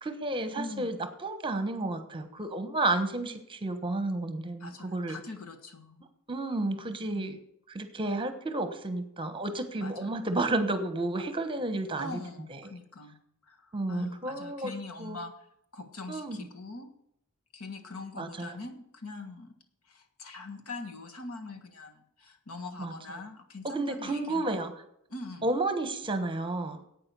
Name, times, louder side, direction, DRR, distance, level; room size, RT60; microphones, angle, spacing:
voice 1, 0.0-5.2 6.3-7.4 7.7-12.2 12.5-12.6 13.7-14.7 15.0-15.2 16.1-16.5 18.2-18.6 22.8-22.9 23.6-24.7 25.4-26.8, right 2 dB, 25° right, 9 dB, 1.2 m, -31 dB
voice 2, 0.6-0.9 4.6-6.0 7.1-7.3 9.8-10.2 11.9-13.2 13.5-15.3 15.7-16.9 17.5-19.5 19.9-24.4 25.1-25.5, left 3 dB, 70° left, 5 dB, 1.6 m, -43 dB
10.5 x 8.7 x 6.9 m, 0.75 s
head